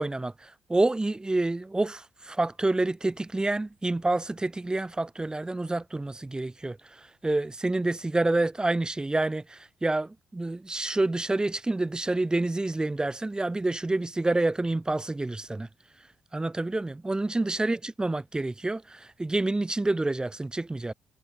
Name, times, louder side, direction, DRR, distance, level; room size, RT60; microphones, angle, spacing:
voice 1, 0.0-15.7 16.3-20.9, right 2 dB, 15° right, 0.5 m, -28 dB
hypercardioid pair, 45°, 5 cm